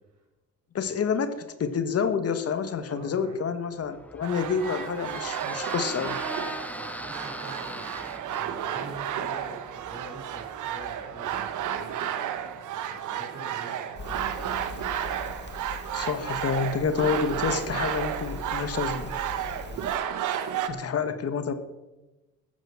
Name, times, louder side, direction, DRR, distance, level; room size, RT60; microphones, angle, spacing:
voice 1, 0.7-6.2 15.9-19.1 20.7-21.5, left 6 dB, 50° left, 10 dB, 1.4 m, -28 dB
voice 2, 2.9-3.5 6.7-12.0 12.7-14.5 19.4-19.8 20.9-21.1, right 3 dB, 60° right, 1 dB, 6.0 m, -45 dB
Squeak, 3.8-12.6, left 1 dB, 5° left, 0.5 m, -41 dB
sound 1, 4.2-20.7, right 10 dB, 80° right, 1.3 m, -32 dB
Crackle, 13.9-20.0, left 3 dB, 35° left, 2.1 m, -41 dB
14.5 x 9.4 x 7.4 m, 1.1 s
cardioid pair, 90°, 30 cm